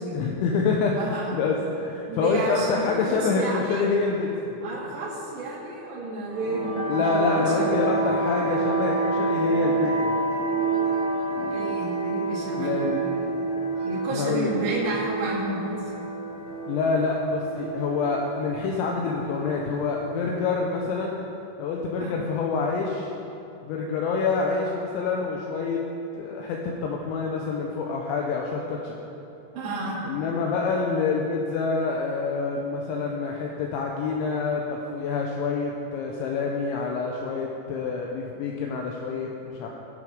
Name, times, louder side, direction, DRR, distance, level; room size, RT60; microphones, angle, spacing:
voice 1, 0.1-4.6 6.9-10.1 12.6-13.0 14.1-14.5 16.7-21.1 21.6-23.1 23.6-25.8 26.2-29.0 30.0-39.7, left 4 dB, 80° left, -1 dB, 3.2 m, -27 dB
voice 2, 0.9-1.3 2.1-3.8 4.6-7.8 11.4-12.7 13.0-13.2 13.8-15.8 22.0-22.1 29.5-30.0, right 2 dB, 45° right, -8 dB, 3.4 m, -31 dB
sound 1, 6.3-20.4, right 3 dB, 20° left, 1.9 m, -28 dB
18.5 x 6.5 x 5.1 m, 2.9 s
omnidirectional pair, 5.3 m